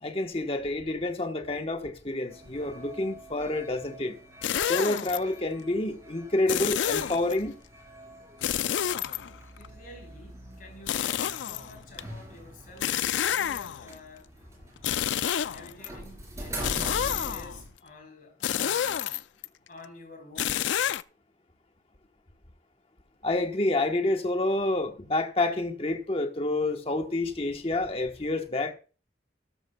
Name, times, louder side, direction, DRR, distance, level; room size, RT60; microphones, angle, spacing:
voice 1, 0.0-4.2 4.6-7.6 23.2-28.7, left 2 dB, 30° left, 1.1 m, -28 dB
sound 1, 2.3-17.7, right 1 dB, 15° right, 4.4 m, -44 dB
sound 2, 4.4-5.2 6.5-7.4 8.4-9.7 10.9-12.0 12.8-13.9 14.8-15.9 16.6-17.6 18.4-19.5 20.4-21.0, left 10 dB, 85° left, 0.4 m, -29 dB
voice 2, 9.6-14.3 14.9-18.9 19.7-20.9, left 2 dB, 50° left, 3.9 m, -50 dB
13.0 x 12.5 x 2.3 m
head